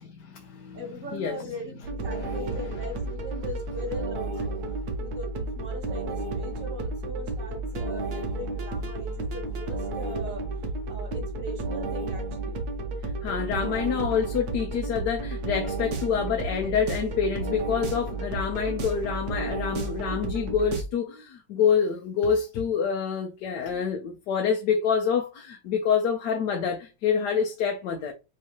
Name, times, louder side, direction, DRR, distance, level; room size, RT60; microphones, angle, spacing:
voice 1, 0.2-0.8 1.1-1.4 2.2-2.4 13.2-28.1, left 7 dB, 75° left, 1.3 m, -27 dB
voice 2, 0.7-4.6 5.0-10.4 10.9-12.9, left 1 dB, 50° right, 1.8 m, -40 dB
sound 1, 1.8-20.8, right 2 dB, 65° right, 1.5 m, -32 dB
4.8 x 3.2 x 2.9 m
omnidirectional pair, 1.9 m